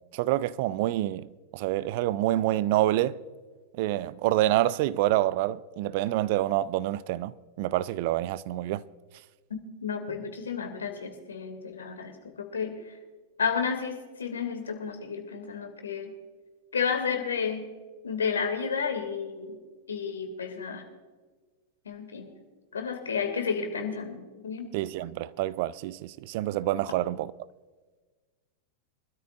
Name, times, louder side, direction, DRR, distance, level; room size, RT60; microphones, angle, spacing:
voice 1, 0.1-3.2 3.8-8.8 24.7-27.3, right 15 dB, 50° right, 0.4 m, -27 dB
voice 2, 9.5-12.8 13.4-16.1 16.7-17.7 18.0-19.6 19.9-20.8 21.9-22.4 22.7-24.7, left 6 dB, 70° left, 2.2 m, -32 dB
24.0 x 13.0 x 2.5 m
figure-of-eight pair, 95°, 0 cm